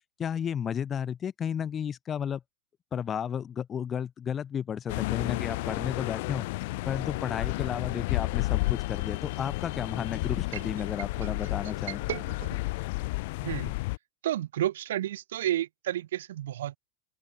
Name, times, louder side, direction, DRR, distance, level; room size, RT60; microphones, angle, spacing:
voice 1, 0.2-2.4 2.9-6.5 6.9-12.0, left 8 dB, 25° left, 1.1 m, -33 dB
sound 1, 4.9-14.0, left 22 dB, 65° left, 0.5 m, -31 dB
voice 2, 10.5-10.9 11.2-11.4 11.9-12.5 13.4-13.7 14.2-16.8, right 13 dB, 80° right, 2.5 m, -32 dB
open air
supercardioid pair, 125°, 0 cm